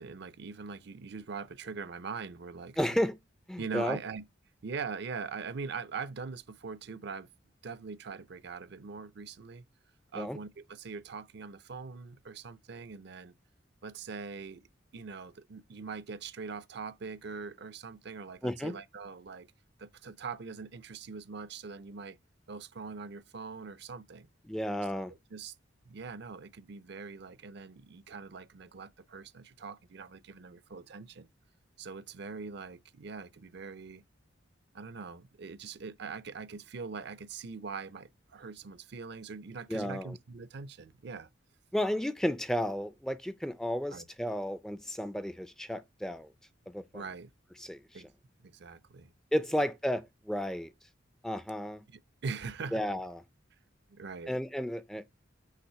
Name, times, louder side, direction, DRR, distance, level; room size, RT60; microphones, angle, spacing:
voice 1, 0.0-3.0 3.6-4.2 4.6-7.3 7.6-9.6 10.1-13.3 13.8-14.7 14.9-19.5 19.8-22.2 22.5-24.3 25.3-25.5 25.9-31.3 31.8-34.0 34.7-41.3 43.9-44.0 46.9-47.3 47.9-48.1 48.4-49.1 51.9-52.8 53.9-54.4, right 5 dB, 60° right, 0.5 m, -42 dB
voice 2, 2.8-3.2 3.5-4.0 10.1-10.4 18.4-18.7 24.5-25.1 39.7-40.2 41.7-46.3 46.7-47.0 47.6-47.8 49.3-50.7 51.2-51.8 52.7-53.2 54.3-55.0, equal, 5° left, 0.4 m, -33 dB
5.8 x 3.3 x 5.5 m
head